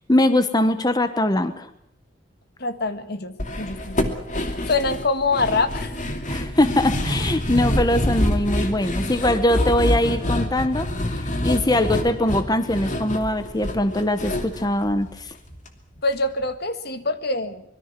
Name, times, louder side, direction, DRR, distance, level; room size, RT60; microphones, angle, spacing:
voice 1, 0.1-1.7 6.3-10.9 11.2-15.3, left 1 dB, 20° left, 10 dB, 1.2 m, -22 dB
voice 2, 2.6-4.2 4.7-6.0 16.0-17.6, left 3 dB, 60° left, 10 dB, 1.7 m, -25 dB
sound 1, 3.4-15.7 16.0-16.1 16.4-16.5, left 1 dB, 40° left, 2.7 m, -26 dB
25.0 x 22.0 x 6.1 m, 0.75 s
head